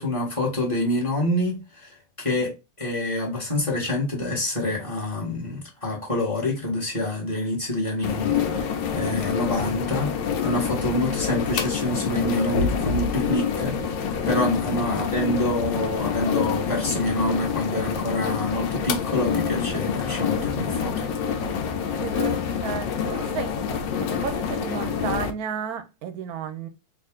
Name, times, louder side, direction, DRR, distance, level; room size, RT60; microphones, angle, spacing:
voice 1, 0.0-2.5 2.8-10.1 10.4-21.0, left 1 dB, 20° left, 1.3 m, -27 dB
sound 1, 8.0-25.3, left 7 dB, 80° left, 1.3 m, -27 dB
voice 2, 22.0-23.5 24.1-26.7, right 8 dB, 70° right, 1.0 m, -33 dB
3.7 x 2.5 x 3.5 m
omnidirectional pair, 1.9 m